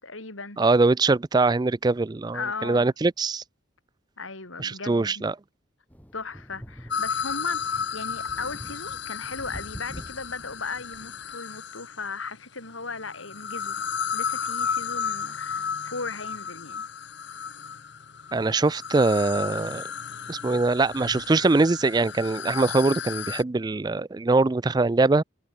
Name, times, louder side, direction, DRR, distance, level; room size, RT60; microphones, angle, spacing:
voice 1, 0.0-0.6 2.3-2.9 4.2-5.3 6.1-13.8 14.1-16.9, left 4 dB, 80° left, 4.9 m, -37 dB
voice 2, 0.6-3.4 4.6-5.3 18.3-19.8 20.3-25.2, right 3 dB, 20° right, 0.4 m, -22 dB
sound 1, 5.9-11.4, equal, 10° left, 4.4 m, -45 dB
sound 2, 6.9-12.1 12.9-23.4, left 7 dB, 60° left, 0.9 m, -33 dB
head